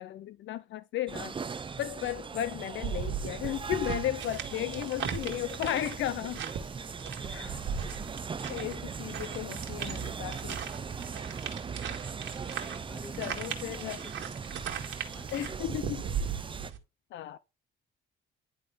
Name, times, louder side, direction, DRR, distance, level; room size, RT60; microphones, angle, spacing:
voice 1, 0.0-6.4 7.3-7.6 8.5-10.6 13.2-14.0 15.3-16.0 17.1-17.4, left 12 dB, 70° left, 0.5 m, -35 dB
sound 1, 1.1-16.7, right 5 dB, 25° right, 0.5 m, -39 dB
sound 2, 2.8-16.8, right 7 dB, 75° right, 1.9 m, -38 dB
voice 2, 7.2-7.8 12.9-14.3 15.1-15.5, left 2 dB, 15° left, 1.6 m, -51 dB
11.0 x 3.9 x 3.4 m
cardioid pair, 90°, 20 cm